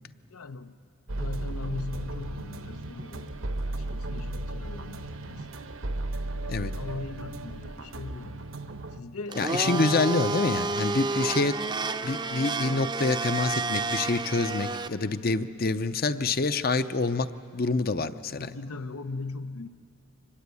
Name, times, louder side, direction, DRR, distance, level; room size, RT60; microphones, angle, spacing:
voice 1, 0.3-0.8 1.1-3.4 3.7-5.5 6.3-8.4 8.9-10.2 10.9-11.1 18.3-19.7, left 3 dB, 90° left, 11 dB, 0.9 m, -39 dB
sound 1, 1.1-9.0, right 1 dB, 70° right, 1.0 m, -35 dB
Domestic sounds home sounds, 9.3-14.9, right 3 dB, 20° right, 0.5 m, -30 dB
voice 2, 9.4-11.5 12.0-17.3 17.5-18.5, left 3 dB, 45° left, 12 dB, 0.6 m, -27 dB
24.5 x 20.0 x 8.4 m, 2.3 s
head